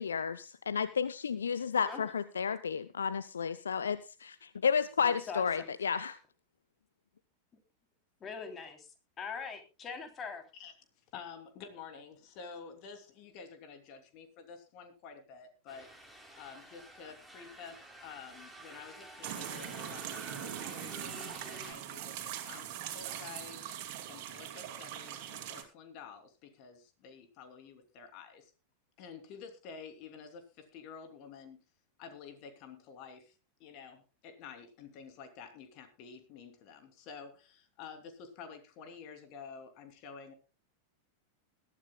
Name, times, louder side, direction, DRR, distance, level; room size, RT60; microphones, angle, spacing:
voice 1, 0.0-6.1, left 6 dB, 70° left, 15 dB, 0.6 m, -32 dB
voice 2, 5.0-5.7 8.2-8.8 9.2-10.4, left 5 dB, 25° left, 6 dB, 3.1 m, -42 dB
voice 3, 11.1-15.9 16.3-22.2 22.5-23.6 24.1-28.5 29.0-31.6 32.0-33.3 33.6-40.3, left 6 dB, 40° left, 7 dB, 2.9 m, -50 dB
sound 1, 15.7-21.7, equal, ahead, 3.3 m, -50 dB
sound 2, 19.2-25.6, right 11 dB, 45° right, 2.7 m, -42 dB
21.0 x 12.5 x 2.3 m, 0.30 s
figure-of-eight pair, 90°, 0 cm